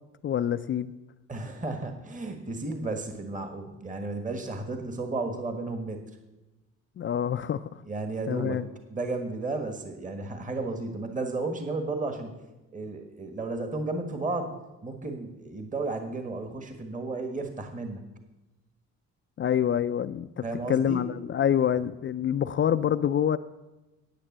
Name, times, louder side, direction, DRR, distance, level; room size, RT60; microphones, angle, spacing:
voice 1, 0.2-0.9 7.0-7.8 8.3-8.7 19.4-23.4, left 9 dB, 40° left, 11 dB, 0.4 m, -26 dB
voice 2, 1.3-6.0 7.8-8.6 8.9-12.3 12.7-14.5 14.8-18.0 20.4-21.0, right 3 dB, 25° right, 6 dB, 1.6 m, -33 dB
10.0 x 8.7 x 7.4 m, 1.1 s
cardioid pair, 90°, 30 cm